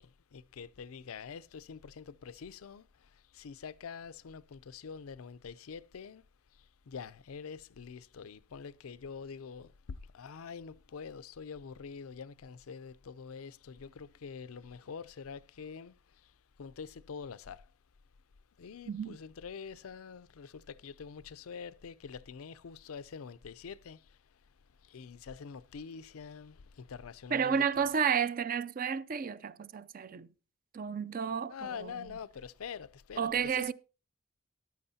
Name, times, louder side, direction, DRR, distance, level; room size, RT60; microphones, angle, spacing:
voice 1, 0.0-6.2 6.5-17.7 18.6-24.4 24.8-27.6 31.5-33.7, left 6 dB, 90° left, 0.5 m, -46 dB
voice 2, 18.9-19.2 27.3-30.3 30.7-32.1 33.2-33.7, right 7 dB, 40° right, 0.4 m, -32 dB
14.0 x 10.5 x 2.7 m
head